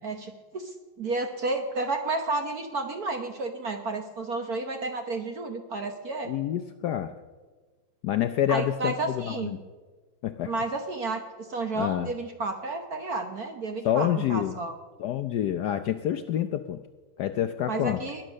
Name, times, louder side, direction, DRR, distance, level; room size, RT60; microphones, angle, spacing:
voice 1, 0.0-6.3 8.5-9.5 10.4-14.7 17.7-18.2, right 3 dB, 50° right, 5 dB, 1.4 m, -31 dB
voice 2, 6.3-7.1 8.0-9.6 10.2-10.5 11.8-12.1 13.8-14.5 15.0-16.8 17.2-18.0, left 10 dB, 70° left, 9 dB, 1.0 m, -27 dB
20.5 x 10.5 x 6.4 m, 1.4 s
omnidirectional pair, 2.3 m